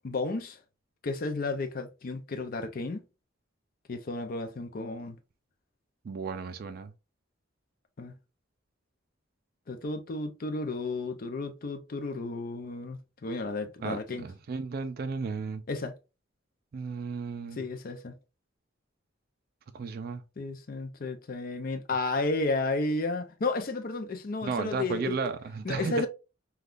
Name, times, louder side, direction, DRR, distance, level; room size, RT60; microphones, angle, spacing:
voice 1, 0.0-0.6 1.0-3.0 3.9-5.2 8.0-8.2 9.7-14.3 15.7-15.9 17.5-18.2 20.4-25.2 25.6-26.1, left 3 dB, 50° left, 0.5 m, -32 dB
voice 2, 6.0-6.9 13.8-15.6 16.7-17.6 19.7-20.2 24.4-26.1, right 4 dB, 50° right, 0.3 m, -34 dB
3.5 x 2.3 x 2.4 m
head